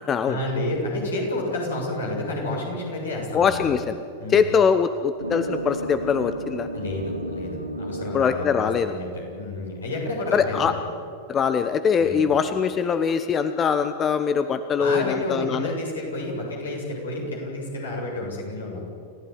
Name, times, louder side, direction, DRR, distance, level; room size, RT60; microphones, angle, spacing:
voice 1, 0.3-3.8 4.2-4.5 6.7-10.7 12.0-12.4 14.8-18.9, left 2 dB, 70° left, -1 dB, 7.4 m, -30 dB
voice 2, 3.3-3.9 4.3-6.7 8.1-8.9 10.3-10.7 11.3-15.7, left 6 dB, 25° left, 11 dB, 1.0 m, -22 dB
sound 1, 5.2-10.4, right 1 dB, 90° right, 2.2 m, -34 dB
29.5 x 15.5 x 9.6 m, 2.6 s
figure-of-eight pair, 90°, 0 cm